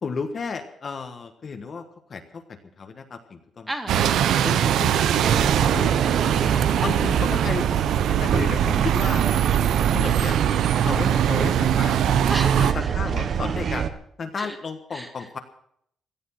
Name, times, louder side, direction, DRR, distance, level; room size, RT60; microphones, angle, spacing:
voice 1, 0.0-3.7 4.4-6.2 6.8-7.6 8.1-9.3 9.9-10.4 10.8-12.3 12.6-13.9 14.2-15.4, left 5 dB, 35° left, 6 dB, 1.4 m, -33 dB
voice 2, 3.7-4.2 6.4-6.9 12.3-12.9 14.4-14.6 14.9-15.1, right 1 dB, 10° right, 6 dB, 1.8 m, -33 dB
Bus, 3.9-12.7, right 10 dB, 75° right, 0.9 m, -22 dB
sound 1, 5.2-13.9, right 7 dB, 45° right, 1.1 m, -26 dB
17.0 x 12.5 x 6.0 m, 0.67 s
cardioid pair, 170°, 0 cm